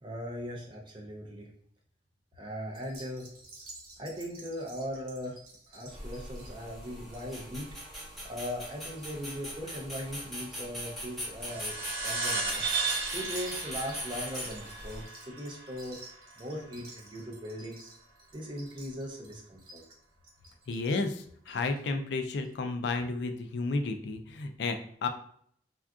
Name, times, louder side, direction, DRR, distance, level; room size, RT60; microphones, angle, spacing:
voice 1, 0.0-1.5 2.4-3.3 4.0-5.4 5.7-7.7 8.2-12.6 13.1-16.0 16.4-17.9 18.3-19.8, equal, 25° right, 0 dB, 0.5 m, -39 dB
sound 1, 2.7-9.5 9.8-10.3 10.9-11.2 12.0-21.8 22.1-22.2 22.4-22.5, right 2 dB, 55° right, 0.9 m, -51 dB
sound 2, 5.9-15.0, equal, ahead, 0.9 m, -41 dB
sound 3, 11.4-16.3, right 4 dB, 85° right, 0.7 m, -35 dB
voice 2, 20.7-25.1, left 3 dB, 65° left, 6 dB, 0.4 m, -32 dB
3.5 x 2.4 x 2.3 m, 0.64 s
head